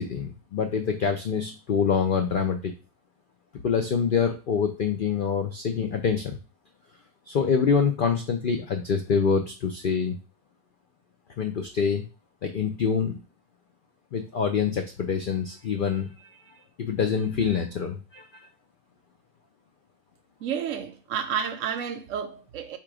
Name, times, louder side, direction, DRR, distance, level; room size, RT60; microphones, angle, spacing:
voice 1, 0.0-2.7 3.6-6.4 7.3-10.2 11.4-12.0 12.4-13.2 14.1-16.3 16.8-18.3, left 6 dB, 75° left, 0.4 m, -25 dB
voice 2, 20.4-22.8, right 8 dB, 70° right, 0.9 m, -31 dB
3.7 x 2.9 x 4.8 m
omnidirectional pair, 1.5 m